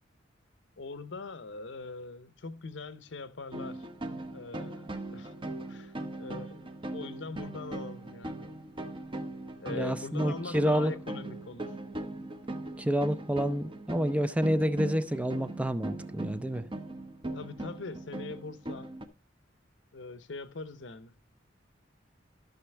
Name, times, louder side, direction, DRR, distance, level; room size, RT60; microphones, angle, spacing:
voice 1, 0.8-3.9 4.3-5.3 5.7-8.5 9.6-11.7 17.3-19.0 19.9-21.2, left 3 dB, 70° left, 0.8 m, -42 dB
sound 1, 3.5-19.1, right 2 dB, 25° right, 0.8 m, -40 dB
voice 2, 9.7-10.9 12.8-16.6, equal, 5° right, 0.4 m, -28 dB
13.0 x 6.1 x 3.3 m
head